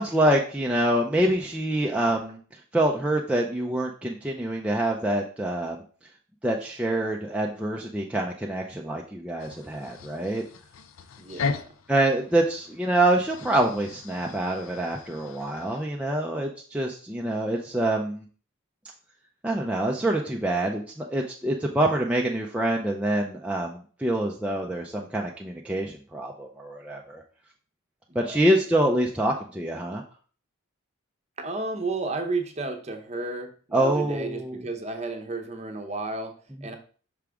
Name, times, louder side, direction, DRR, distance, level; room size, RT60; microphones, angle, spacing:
voice 1, 0.0-5.8 6.4-10.4 11.9-18.3 19.4-27.2 28.1-30.0 33.7-34.6, right 1 dB, 5° right, -1 dB, 0.4 m, -26 dB
sound 1, 9.4-15.9, left 5 dB, 80° left, 0.5 m, -38 dB
voice 2, 11.2-11.6 28.1-28.5 31.4-36.8, right 3 dB, 30° right, 5 dB, 0.7 m, -33 dB
5.9 x 4.9 x 3.5 m, 0.42 s
head